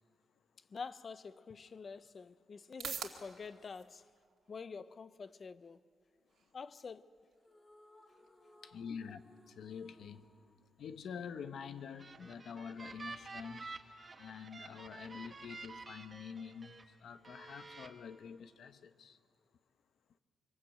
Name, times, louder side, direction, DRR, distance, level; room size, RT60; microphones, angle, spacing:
voice 1, 0.7-4.0 4.5-5.9 6.5-7.1, left 5 dB, 35° left, 0.6 m, -47 dB
sound 1, 1.9-18.3, right 8 dB, 70° right, 2.1 m, -55 dB
sound 2, 7.4-11.8, left 1 dB, 15° left, 2.2 m, -64 dB
voice 2, 8.6-10.3 10.8-13.7 14.2-19.2, left 6 dB, 65° left, 1.0 m, -47 dB
sound 3, 11.8-16.8 17.2-17.9, right 3 dB, 25° right, 1.5 m, -50 dB
25.5 x 24.5 x 8.1 m
wide cardioid pair, 155°, 0 cm